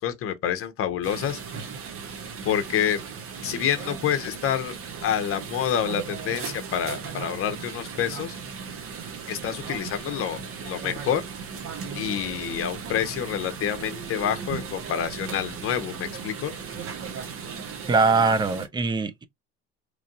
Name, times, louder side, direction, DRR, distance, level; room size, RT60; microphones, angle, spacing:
voice 1, 0.0-1.4 2.4-3.0 3.4-4.7 5.0-8.4 9.3-11.2 11.9-16.5, left 9 dB, 40° left, 0.8 m, -28 dB
sound 1, 1.0-18.7, right 6 dB, 40° right, 0.8 m, -37 dB
voice 2, 17.9-19.2, right 4 dB, 15° right, 0.3 m, -22 dB
3.1 x 2.5 x 2.5 m
supercardioid pair, 85°, 33 cm